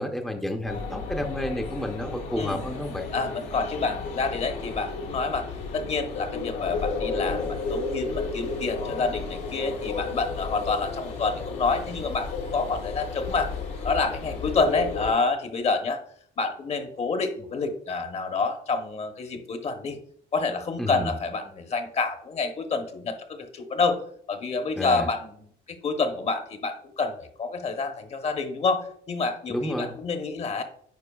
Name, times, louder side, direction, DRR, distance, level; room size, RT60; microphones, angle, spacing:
voice 1, 0.0-3.1 20.8-21.2 24.8-25.1 29.5-30.0, left 1 dB, ahead, 3 dB, 0.6 m, -30 dB
sound 1, 0.6-15.1, left 4 dB, 85° left, 1.9 m, -33 dB
voice 2, 3.1-5.5 5.7-13.5 13.8-16.0 16.4-20.0 20.3-24.0 24.3-30.6, left 4 dB, 40° left, 6 dB, 0.9 m, -28 dB
9.4 x 4.7 x 2.3 m, 0.63 s
cardioid pair, 110°, 17 cm